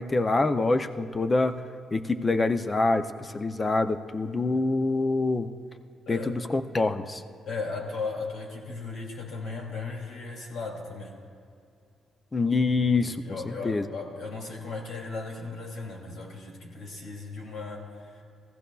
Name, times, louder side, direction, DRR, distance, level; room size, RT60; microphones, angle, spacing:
voice 1, 0.0-1.6 1.9-5.5 6.1-7.2 12.3-13.9, left 3 dB, 20° left, 9 dB, 0.5 m, -26 dB
voice 2, 7.5-11.2 12.9-18.2, left 4 dB, 85° left, -1 dB, 2.6 m, -36 dB
22.0 x 15.5 x 2.3 m, 2.4 s
wide cardioid pair, 165°, 0 cm